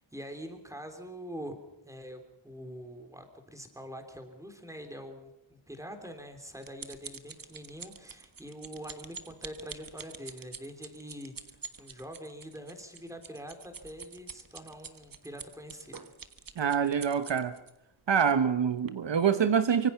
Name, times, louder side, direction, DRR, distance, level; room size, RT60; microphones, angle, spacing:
voice 1, 0.1-1.6 1.8-16.1, equal, 5° right, 3.4 m, -44 dB
sound 1, 6.1-17.7 18.4-18.5 18.9-19.0, right 6 dB, 45° right, 1.4 m, -46 dB
voice 2, 16.6-17.6 18.1-19.9, right 7 dB, 60° right, 1.0 m, -25 dB
25.0 x 24.5 x 5.7 m
wide cardioid pair, 155°, 48 cm